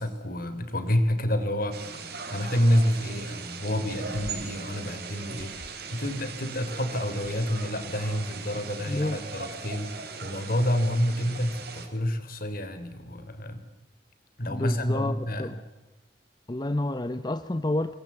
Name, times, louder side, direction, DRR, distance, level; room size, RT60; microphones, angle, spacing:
voice 1, 0.0-13.6 14.4-15.6, equal, 55° left, 10 dB, 3.5 m, -28 dB
sound 1, 1.7-11.9, right 5 dB, 60° right, 4.6 m, -39 dB
sound 2, 4.1-6.5 6.8-8.7, right 1 dB, 40° right, 2.1 m, -48 dB
voice 2, 8.9-9.2 14.5-15.6 16.5-17.9, left 1 dB, 25° left, 11 dB, 0.8 m, -29 dB
28.5 x 21.0 x 8.4 m, 1.1 s
head